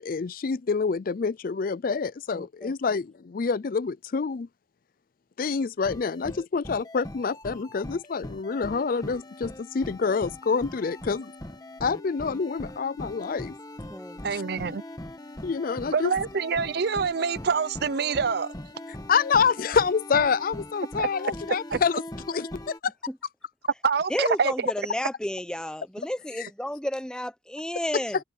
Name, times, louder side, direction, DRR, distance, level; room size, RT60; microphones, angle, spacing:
voice 1, 0.0-4.5 5.4-11.3 11.8-13.5 14.3-14.4 15.4-16.1 19.1-22.0 22.3-22.9 26.4-26.5 27.9-28.0, left 5 dB, 50° left, 0.4 m, -27 dB
voice 2, 2.3-2.7 13.9-14.2 24.1-28.2, equal, 5° left, 0.7 m, -32 dB
sound 1, 5.9-22.8, left 1 dB, 20° left, 1.7 m, -41 dB
voice 3, 14.2-14.8 15.9-18.5 21.0-21.1 21.7-21.8 23.8-24.7, right 5 dB, 55° right, 0.5 m, -26 dB
head